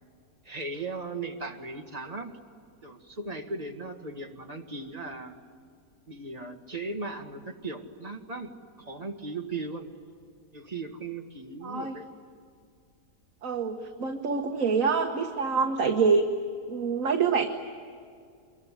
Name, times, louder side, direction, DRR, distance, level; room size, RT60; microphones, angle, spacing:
voice 1, 0.4-2.4 2.8-5.4 6.1-8.5 8.8-9.9 10.5-12.1, right 3 dB, 25° right, 3 dB, 1.7 m, -37 dB
voice 2, 11.6-11.9 13.4-16.2 16.7-17.5, right 5 dB, 55° right, 4 dB, 1.6 m, -26 dB
25.5 x 23.0 x 9.9 m, 2.3 s
omnidirectional pair, 1.7 m